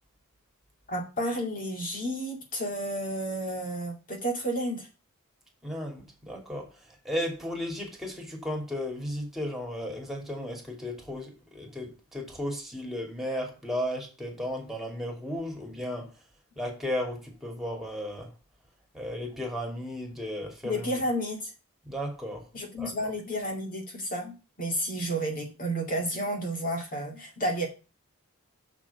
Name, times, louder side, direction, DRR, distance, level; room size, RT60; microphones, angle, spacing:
voice 1, 0.9-4.9 20.6-21.5 22.5-27.7, equal, 40° left, 2.1 m, -31 dB
voice 2, 5.6-6.7 7.0-16.1 16.6-18.3 18.9-20.9 21.9-22.5 22.8-23.1, equal, ahead, 2.8 m, -34 dB
6.6 x 6.1 x 6.9 m
head